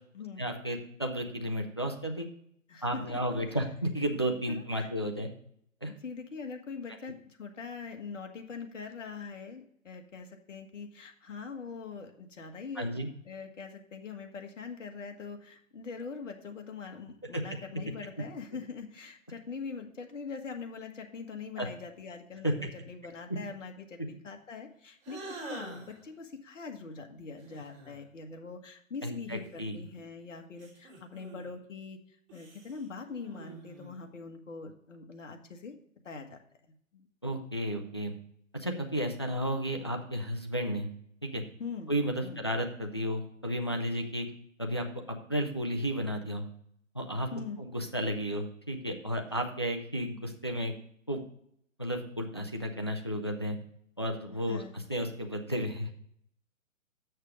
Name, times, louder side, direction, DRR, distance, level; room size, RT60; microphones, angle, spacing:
voice 1, 0.4-2.3 2.8-5.3 5.8-5.9 12.8-13.1 17.3-17.4 21.6-21.7 22.4-22.5 29.0-29.8 37.2-38.1 38.5-40.9 41.2-41.4 41.9-44.3 44.6-46.5 46.9-47.3 47.6-50.7 51.1-51.2 51.8-53.6 54.0-54.6 54.9-55.9, equal, 20° left, 3 dB, 0.3 m, -33 dB
voice 2, 2.7-3.4 4.5-4.9 5.9-12.9 13.2-32.0 32.3-35.8 36.0-36.4 36.9-37.1 41.6-41.9 42.2-42.4 47.3-47.6 54.5-54.7, left 5 dB, 65° left, 4 dB, 1.5 m, -43 dB
sound 1, 25.0-26.0 27.4-28.0 29.3-30.0 30.6-31.6 32.3-34.1, right 3 dB, 30° right, 3.0 m, -47 dB
6.8 x 6.5 x 4.9 m, 0.70 s
hypercardioid pair, 145°, 40 cm